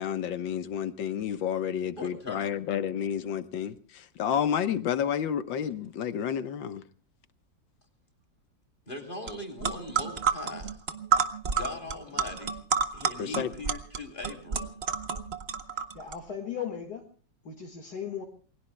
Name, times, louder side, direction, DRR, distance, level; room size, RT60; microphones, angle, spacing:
voice 1, 0.0-6.8 13.2-13.5, left 9 dB, 85° left, 1.8 m, -30 dB
voice 2, 2.0-2.5 8.9-10.8 11.5-12.6 12.9-14.7, left 2 dB, 25° left, 3.4 m, -40 dB
sound 1, 9.3-9.4 9.6-16.2, right 6 dB, 40° right, 1.1 m, -29 dB
voice 3, 15.7-17.1 17.4-18.2, left 8 dB, 60° left, 2.3 m, -37 dB
28.5 x 21.5 x 2.2 m
omnidirectional pair, 2.0 m